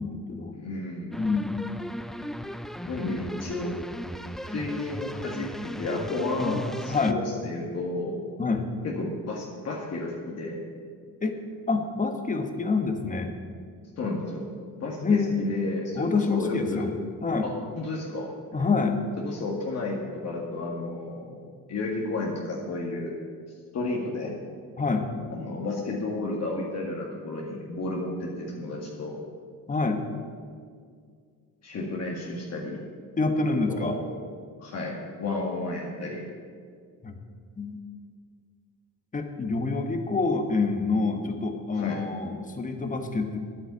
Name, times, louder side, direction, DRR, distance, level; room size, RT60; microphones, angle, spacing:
voice 1, 0.0-0.6 1.2-1.6 6.4-6.6 6.9-7.2 8.4-8.7 11.2-11.4 11.7-13.3 15.0-15.3 15.9-16.9 17.2-17.5 18.5-19.0 24.8-25.1 29.7-30.0 33.2-34.0 37.0-37.2 37.6-37.8 39.1-43.4, left 4 dB, 20° left, 5 dB, 1.3 m, -27 dB
voice 2, 0.5-1.2 2.9-3.8 4.5-8.2 8.8-10.7 14.0-14.4 14.8-16.9 17.4-18.3 19.2-21.4 21.7-23.1 23.7-24.3 25.3-29.2 31.6-32.8 33.7-34.1 34.6-36.3 41.7-42.0, left 2 dB, 45° left, -2 dB, 2.0 m, -32 dB
sound 1, 1.1-7.1, equal, ahead, 0.3 m, -37 dB
10.5 x 9.1 x 8.2 m, 2.1 s
cardioid pair, 120°, 35 cm